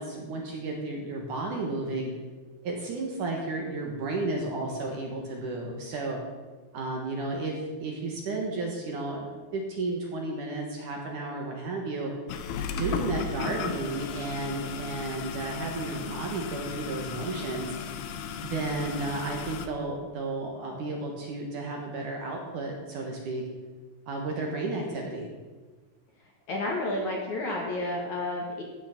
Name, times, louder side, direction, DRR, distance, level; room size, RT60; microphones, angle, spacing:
voice 1, 0.0-2.1 2.6-6.2 6.7-9.3 9.5-12.1 12.7-17.8 18.4-23.4 24.1-25.3, right 2 dB, 60° right, 0 dB, 2.5 m, -33 dB
sound 1, 12.3-19.7, left 6 dB, 75° left, 2.5 m, -35 dB
voice 2, 26.5-28.6, left 2 dB, 55° left, -1 dB, 2.5 m, -31 dB
13.0 x 9.5 x 5.9 m, 1.3 s
omnidirectional pair, 5.0 m